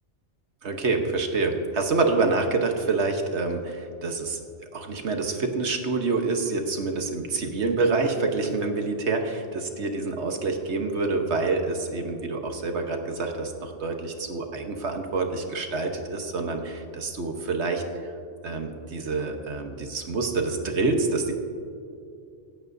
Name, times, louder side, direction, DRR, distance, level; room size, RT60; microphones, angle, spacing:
voice 1, 0.6-4.4 4.7-17.8 18.4-21.3, right 3 dB, 75° right, 4 dB, 1.4 m, -27 dB
25.5 x 8.7 x 2.7 m, 2.5 s
omnidirectional pair, 1.2 m